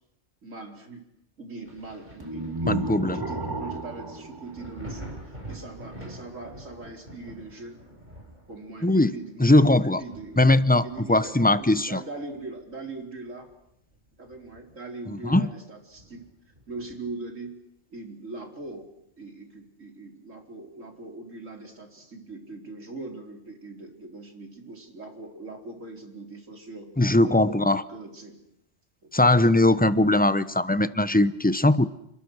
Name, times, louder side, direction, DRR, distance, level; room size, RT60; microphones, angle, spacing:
voice 1, 0.4-1.0 1.4-7.8 8.5-10.4 10.8-13.5 14.2-16.2 16.7-17.6 17.9-18.9 19.2-26.9 27.2-28.4 29.0-29.7, right 3 dB, 90° right, 3 dB, 4.7 m, -41 dB
Thunder, 1.6-13.0 13.4-14.9 15.3-15.4 15.9-17.2 18.6-18.7, right 1 dB, 35° right, 7.1 m, -46 dB
sound 1, 2.2-5.4, right 2 dB, 15° right, 2.2 m, -33 dB
voice 2, 2.7-3.2 8.8-9.1 9.4-10.0 10.4-12.0 15.1-15.5 27.0-27.8 29.1-31.9, left 2 dB, 10° left, 14 dB, 0.8 m, -20 dB
29.0 x 26.0 x 6.5 m, 0.79 s
omnidirectional pair, 1.3 m